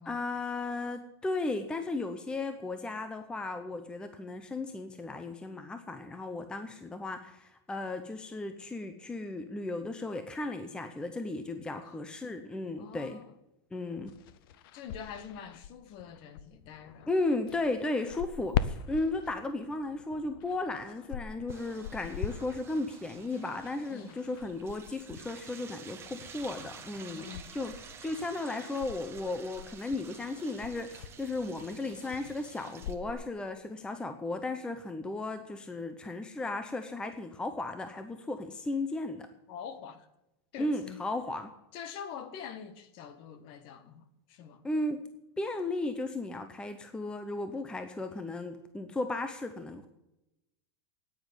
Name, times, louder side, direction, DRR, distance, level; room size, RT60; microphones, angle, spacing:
voice 1, 0.0-13.2 13.7-14.1 17.1-27.7 28.0-39.3 40.6-41.5 44.6-45.1 45.4-49.9, left 2 dB, 5° left, 0.7 m, -35 dB
voice 2, 12.8-13.4 14.7-17.1 23.9-24.2 27.1-27.5 39.5-40.1 40.5-41.0 41.7-44.6, left 8 dB, 40° left, 1.3 m, -45 dB
sound 1, 14.1-33.1, left 9 dB, 55° left, 0.7 m, -42 dB
sound 2, 21.5-32.9, right 7 dB, 20° right, 1.4 m, -51 dB
9.5 x 9.3 x 9.8 m
supercardioid pair, 160°, 14 cm